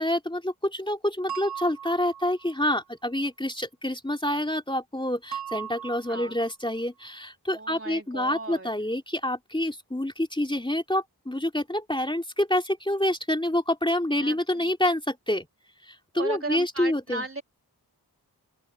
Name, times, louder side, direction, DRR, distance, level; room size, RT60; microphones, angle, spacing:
voice 1, 0.0-15.5 15.9-17.2, left 1 dB, 10° left, 3.1 m, -27 dB
sound 1, 1.3-2.6 5.3-6.5, right 9 dB, 65° right, 3.9 m, -38 dB
voice 2, 7.5-8.7 14.2-14.7 16.1-17.4, right 2 dB, 35° right, 4.1 m, -36 dB
open air
cardioid pair, 55°, 39 cm